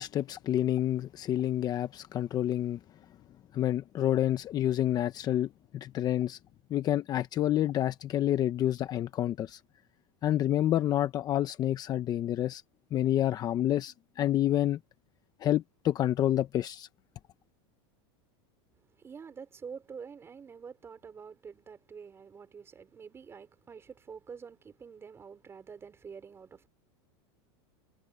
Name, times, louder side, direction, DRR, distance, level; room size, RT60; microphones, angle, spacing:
voice 1, 0.0-2.8 3.5-6.4 6.7-9.6 10.2-12.6 12.9-14.8 15.4-16.9, left 12 dB, 30° left, 0.8 m, -28 dB
voice 2, 19.0-26.7, right 6 dB, 20° right, 5.4 m, -47 dB
supercardioid pair, 145°, 14 cm